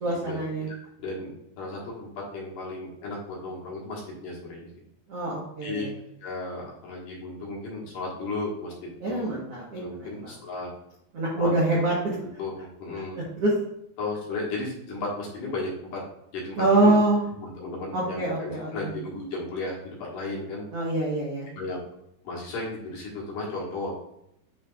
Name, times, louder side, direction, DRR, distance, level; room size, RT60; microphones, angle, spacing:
voice 1, 0.0-0.7 5.1-5.9 9.0-10.3 11.1-12.1 13.4-13.5 16.6-17.2 17.9-18.9 20.7-21.5, right 2 dB, 65° right, -4 dB, 1.4 m, -25 dB
voice 2, 0.7-4.7 5.6-5.9 6.2-8.7 9.1-9.3 9.7-10.7 11.4-11.5 12.4-13.2 14.0-16.0 16.3-16.9 17.4-20.6 21.5-21.8 22.2-23.9, left 2 dB, 60° left, -4 dB, 2.8 m, -34 dB
8.9 x 5.6 x 2.5 m, 0.78 s
omnidirectional pair, 4.9 m